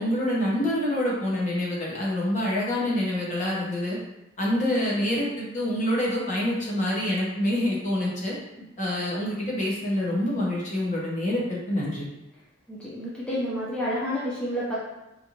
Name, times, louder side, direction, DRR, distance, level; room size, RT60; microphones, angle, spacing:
voice 1, 0.0-4.0 4.4-8.3 8.8-12.1, left 1 dB, 40° left, -5 dB, 1.0 m, -26 dB
voice 2, 12.7-14.8, equal, 5° left, -9 dB, 0.7 m, -29 dB
4.3 x 2.7 x 2.9 m, 0.91 s
head